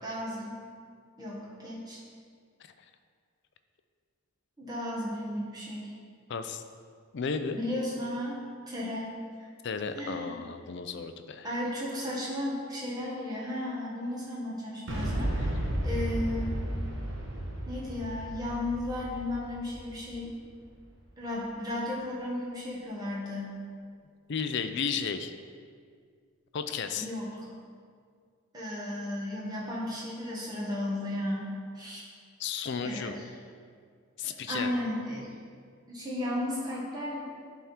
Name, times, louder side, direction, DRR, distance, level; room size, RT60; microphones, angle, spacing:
voice 1, 0.0-0.6 1.2-2.0 4.6-5.9 7.5-8.4 8.7-9.5 10.0-10.4 11.4-16.6 17.6-20.4 21.2-23.5 27.0-27.5 28.5-31.5 31.7-32.0 32.8-33.3 34.5-35.3 35.9-37.4, left 1 dB, 20° right, -6 dB, 1.4 m, -34 dB
voice 2, 6.3-6.6 7.1-7.6 9.6-11.5 24.3-25.3 26.5-27.1 32.4-33.1 34.2-34.7, left 6 dB, 50° left, 9 dB, 0.4 m, -33 dB
Boom, 14.9-20.8, right 1 dB, 55° right, 1.2 m, -33 dB
10.0 x 3.6 x 4.4 m, 2.1 s
head